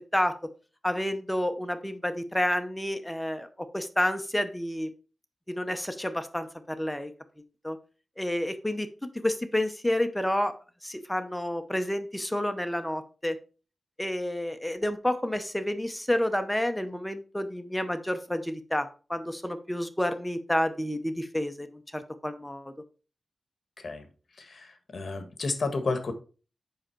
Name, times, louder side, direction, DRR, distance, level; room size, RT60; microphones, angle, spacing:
voice 1, 0.8-4.9 5.5-7.1 7.6-7.8 8.2-10.5 10.8-13.4 14.0-22.7, left 1 dB, 5° left, 8 dB, 0.7 m, -30 dB
voice 2, 23.8-24.1 24.4-26.1, left 3 dB, 55° left, 8 dB, 1.5 m, -32 dB
7.5 x 5.6 x 4.5 m, 0.36 s
wide cardioid pair, 130°, 0 cm